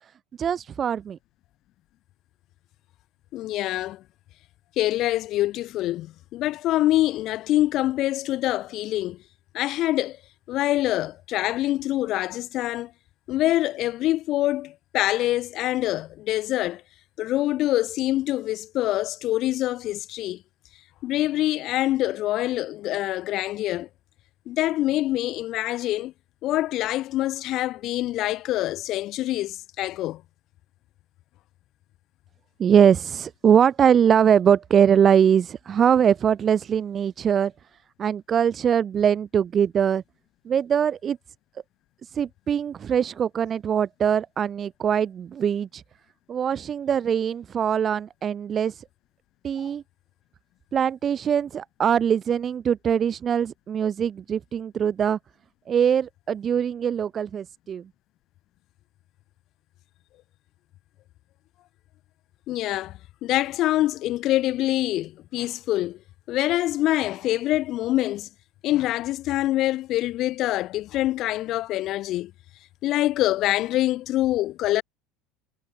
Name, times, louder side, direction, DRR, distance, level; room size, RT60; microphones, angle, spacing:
voice 1, 0.4-1.2 32.6-37.5 38.0-40.0 40.4-41.2 42.0-45.8 46.3-48.8 49.4-49.8 50.7-55.2 55.7-57.9, right 8 dB, 35° right, 6.7 m, -22 dB
voice 2, 3.3-4.0 4.8-9.2 9.5-10.2 10.5-12.9 13.3-16.8 17.2-20.4 21.0-23.9 24.5-26.1 26.4-30.2 62.5-62.9 63.2-66.0 66.3-68.3 68.6-72.3 72.8-74.8, left 15 dB, 50° left, 4.5 m, -25 dB
figure-of-eight pair, 70°, 0 cm